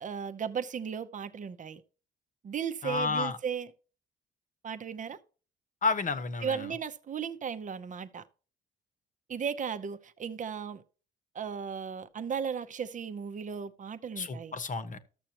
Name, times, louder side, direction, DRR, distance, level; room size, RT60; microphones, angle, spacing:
voice 1, 0.0-1.8 2.4-3.7 4.6-5.2 6.4-8.3 9.3-10.8 11.3-14.6, right 7 dB, 40° right, 0.7 m, -36 dB
voice 2, 2.8-3.4 5.8-6.7 14.2-15.0, left 4 dB, 40° left, 1.1 m, -31 dB
13.5 x 6.7 x 2.9 m
cardioid pair, 90°, 20 cm